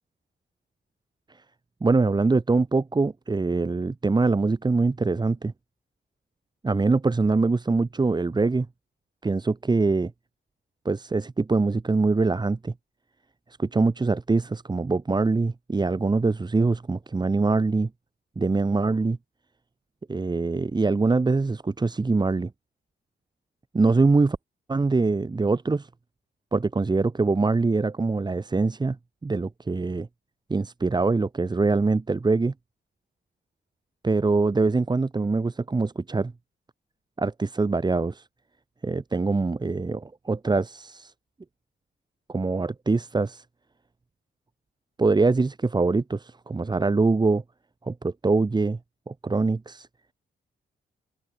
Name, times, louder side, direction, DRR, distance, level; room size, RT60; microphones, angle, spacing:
voice 1, 1.8-5.5 6.6-8.7 9.2-10.1 10.8-12.7 13.6-17.9 18.4-19.2 20.1-22.5 23.7-24.4 24.7-25.9 26.5-29.0 29.2-30.1 30.5-32.5 34.0-36.3 37.2-38.2 38.8-41.1 42.3-43.4 45.0-47.4 47.8-48.8 49.1-49.9, right 3 dB, 20° right, 4.2 m, -23 dB
wide cardioid pair, 155°, 20 cm